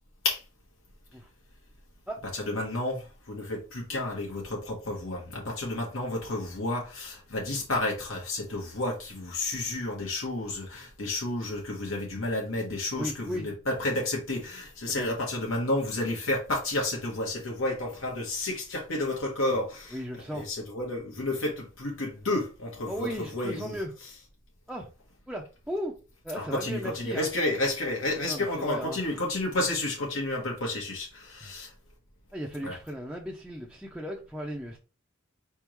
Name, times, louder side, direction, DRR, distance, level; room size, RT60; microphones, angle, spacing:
voice 1, 2.3-20.0 20.3-23.8 26.3-31.7 32.6-32.8, left 2 dB, 80° left, 1.3 m, -31 dB
voice 2, 13.0-13.5 14.9-15.1 19.9-20.5 22.9-23.9 24.7-24.9 25.3-25.9 26.2-27.3 28.3-29.2 31.4-31.5 32.3-34.8, equal, ahead, 0.6 m, -36 dB
4.9 x 3.5 x 3.0 m
head